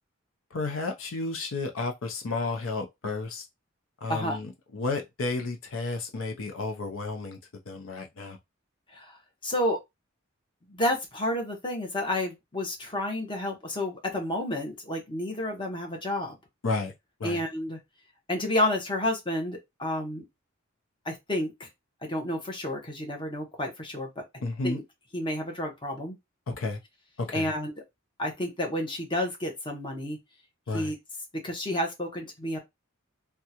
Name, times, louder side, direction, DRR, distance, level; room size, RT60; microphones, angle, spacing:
voice 1, 0.5-3.4 4.0-7.4 7.7-8.4 16.6-16.9 17.2-17.4 24.4-24.8 26.5-26.8 27.2-27.5 30.7-30.9, left 3 dB, 80° left, 0.6 m, -32 dB
voice 2, 9.4-9.8 10.7-16.4 17.2-17.8 18.3-20.2 21.0-21.7 22.0-24.8 25.1-26.2 27.3-27.7 28.2-30.2 30.7-31.0 31.4-32.6, left 1 dB, 25° left, 0.9 m, -30 dB
3.6 x 2.3 x 2.8 m
head